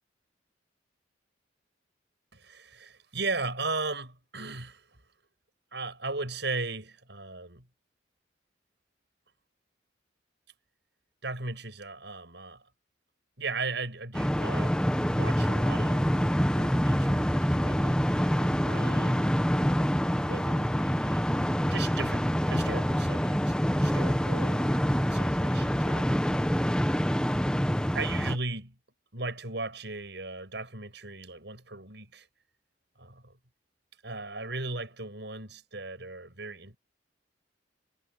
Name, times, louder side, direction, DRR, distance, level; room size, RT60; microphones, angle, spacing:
voice 1, 2.3-5.0 5.7-7.6 11.2-12.6 13.4-14.8 15.1-19.3 20.3-26.1 27.9-28.8 29.1-32.3 33.0-33.3 34.0-36.8, right 3 dB, 65° right, 6.9 m, -37 dB
sound 1, 14.1-28.4, equal, 5° left, 1.1 m, -26 dB
head